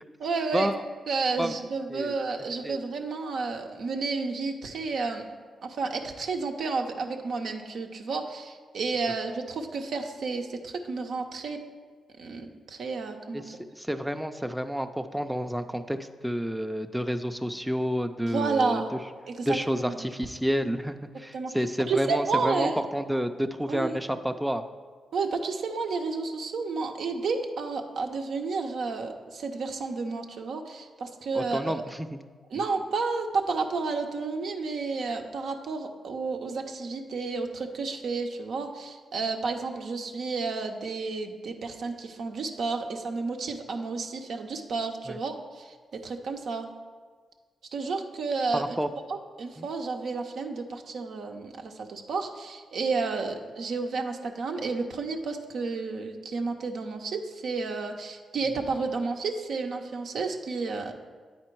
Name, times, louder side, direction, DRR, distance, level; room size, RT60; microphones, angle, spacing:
voice 1, 0.2-0.7 1.1-5.2 5.6-11.6 12.2-13.6 18.3-18.9 19.3-20.1 21.3-21.5 21.9-22.8 23.7-24.0 25.1-31.7 32.5-45.7 46.0-46.7 47.7-48.8 49.1-60.9, right 4 dB, 75° right, 4 dB, 0.6 m, -31 dB
voice 2, 13.4-16.0 16.2-18.8 19.5-24.6 31.3-32.1 45.1-45.2 48.5-48.9 49.6-49.7, equal, 5° right, 7 dB, 0.4 m, -29 dB
8.5 x 4.3 x 4.5 m, 1.5 s
supercardioid pair, 50°, 0 cm